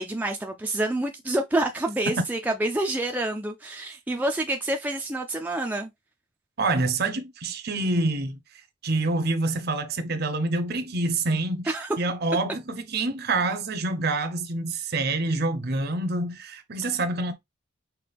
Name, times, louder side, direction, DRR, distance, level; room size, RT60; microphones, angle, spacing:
voice 1, 0.0-5.9 11.7-11.9, right 1 dB, 10° right, 0.3 m, -27 dB
voice 2, 6.6-8.4 8.8-17.3, right 2 dB, 45° right, 0.6 m, -27 dB
5.7 x 2.2 x 3.3 m
head